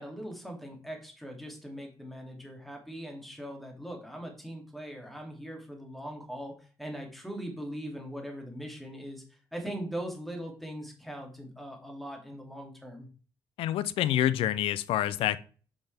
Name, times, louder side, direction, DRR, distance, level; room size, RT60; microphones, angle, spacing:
voice 1, 0.0-9.2 9.5-13.1, equal, ahead, 1 dB, 2.6 m, -40 dB
voice 2, 13.6-15.4, left 12 dB, 85° left, 17 dB, 0.5 m, -27 dB
8.1 x 5.4 x 3.4 m, 0.39 s
cardioid pair, 80°, 9 cm